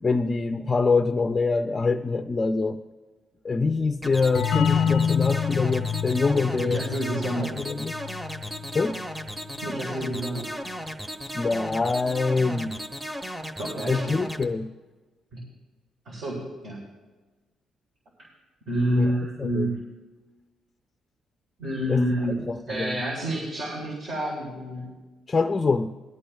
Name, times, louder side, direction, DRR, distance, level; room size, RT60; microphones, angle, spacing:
voice 1, 0.0-2.8 3.4-6.8 7.5-7.9 8.7-9.0 11.3-12.8 13.9-14.7 19.0-19.1 19.4-19.8 21.9-22.0 22.5-23.0 25.3-25.9, left 4 dB, 25° left, 6 dB, 0.5 m, -25 dB
sound 1, 4.0-14.4, equal, 10° right, 1.1 m, -35 dB
sound 2, 4.3-9.8, left 7 dB, 80° left, 0.6 m, -28 dB
voice 2, 6.5-7.5 9.6-10.4 13.6-14.2 15.3-15.5 16.1-16.8 18.7-19.8 21.6-22.4 22.7-24.9, equal, 60° right, -4 dB, 3.8 m, -28 dB
20.5 x 13.0 x 2.3 m, 1.3 s
cardioid pair, 90°, 0 cm